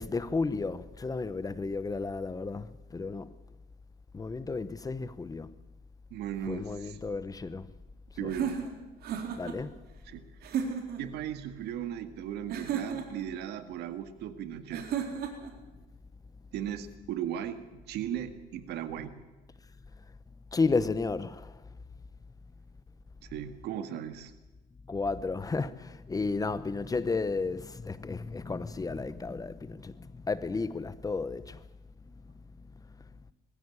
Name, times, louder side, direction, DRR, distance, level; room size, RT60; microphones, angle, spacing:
voice 1, 0.0-3.3 4.1-5.5 6.5-7.7 8.2-8.3 9.4-9.7 20.5-21.6 24.9-31.6 32.1-32.2, left 4 dB, 20° left, 1.0 m, -33 dB
voice 2, 6.1-7.0 8.2-8.7 10.1-10.2 11.0-15.0 16.5-19.2 23.2-24.3, right 10 dB, 80° right, 1.9 m, -37 dB
sound 1, 8.3-9.6 10.4-11.0 12.5-13.3 14.7-15.5, right 7 dB, 65° right, 3.9 m, -33 dB
21.0 x 15.0 x 9.8 m
cardioid pair, 110°, 17 cm